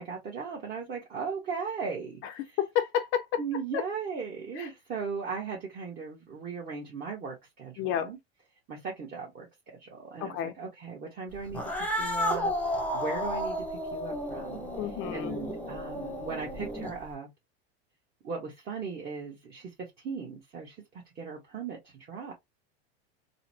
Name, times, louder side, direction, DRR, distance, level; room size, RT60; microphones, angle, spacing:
voice 1, 0.0-2.6 3.4-8.2 8.7-9.5 9.8-17.3 18.2-22.3, right 5 dB, 30° right, 1.1 m, -38 dB
voice 2, 2.6-3.4 3.7-3.8 4.6-4.7 7.8-8.1 10.2-10.5 14.8-15.3, left 10 dB, 40° left, 0.5 m, -30 dB
Cat, 11.5-17.1, left 1 dB, 5° left, 0.9 m, -32 dB
3.9 x 2.1 x 2.6 m
supercardioid pair, 130°, 31 cm